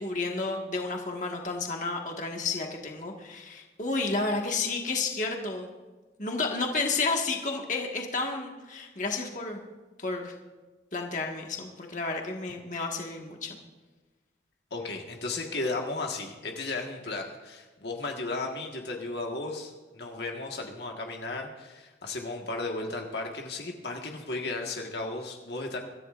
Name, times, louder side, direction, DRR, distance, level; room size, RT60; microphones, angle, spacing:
voice 1, 0.0-5.7 6.2-9.6 10.0-10.3 10.9-13.6, left 3 dB, 40° left, 1 dB, 1.7 m, -31 dB
voice 2, 14.7-25.8, left 2 dB, 65° left, 1 dB, 1.6 m, -35 dB
25.0 x 14.0 x 2.5 m, 1.2 s
head